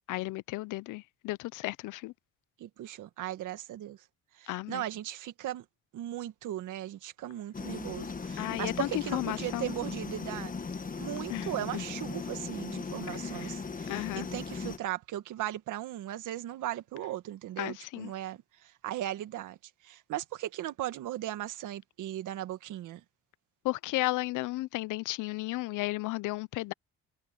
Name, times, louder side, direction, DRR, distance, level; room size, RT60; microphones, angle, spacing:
voice 1, 0.1-2.1 4.5-4.8 8.4-9.7 11.3-11.8 13.1-13.6 13.9-14.3 17.6-18.1 23.6-26.7, left 19 dB, 85° left, 0.5 m, -34 dB
voice 2, 2.6-4.0 4.4-5.6 5.9-10.5 11.0-19.6 19.8-23.0, right 13 dB, 85° right, 1.8 m, -37 dB
sound 1, 7.5-14.8, left 4 dB, 25° left, 1.3 m, -38 dB
cardioid pair, 90°, 30 cm